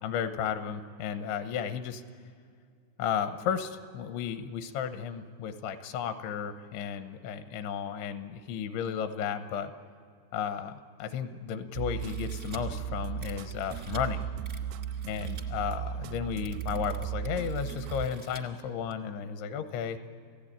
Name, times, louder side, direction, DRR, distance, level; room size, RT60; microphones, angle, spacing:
voice 1, 0.0-2.0 3.0-9.7 10.3-14.3 15.1-20.0, left 8 dB, 80° left, 9 dB, 3.3 m, -34 dB
sound 1, 11.8-18.6, right 9 dB, 85° right, 2.4 m, -36 dB
sound 2, 12.0-12.6 13.2-14.0 14.4-15.4 16.0-16.1 16.3-18.4 18.9-19.0, right 3 dB, 60° right, 0.7 m, -50 dB
27.5 x 16.5 x 8.7 m, 2.3 s
omnidirectional pair, 5.5 m